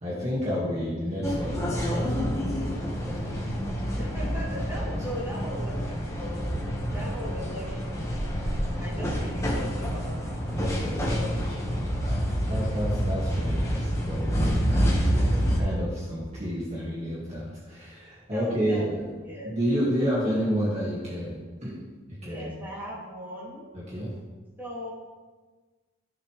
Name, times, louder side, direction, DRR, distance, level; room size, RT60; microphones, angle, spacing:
voice 1, 0.0-3.7 4.8-5.0 9.0-9.1 10.4-19.0 19.4-21.7 22.2-22.5 23.7-24.1, equal, 35° right, -7 dB, 2.0 m, -31 dB
sound 1, 1.2-15.6, equal, 15° left, 1.5 m, -28 dB
voice 2, 4.0-6.5 6.9-8.2 8.8-10.4 12.4-13.0 18.3-18.9 19.3-20.1 22.2-23.7 24.6-24.9, equal, 10° right, -7 dB, 2.9 m, -39 dB
15.5 x 6.5 x 3.4 m, 1.3 s
head